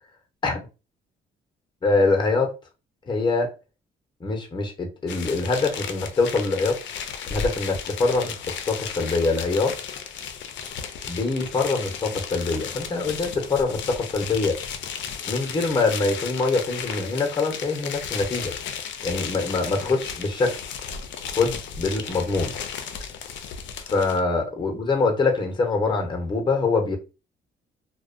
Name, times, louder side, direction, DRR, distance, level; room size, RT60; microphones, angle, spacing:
voice 1, 1.8-2.5 3.1-3.5 4.2-6.8 7.3-8.4 8.7-9.7 11.1-14.6 15.3-18.5 19.0-20.6 21.4-22.5 23.9-27.0, left 3 dB, 25° left, 0.7 m, -24 dB
sound 1, 5.1-24.2, left 7 dB, 70° left, 0.4 m, -34 dB
2.4 x 2.1 x 2.4 m
cardioid pair, 90°, 20 cm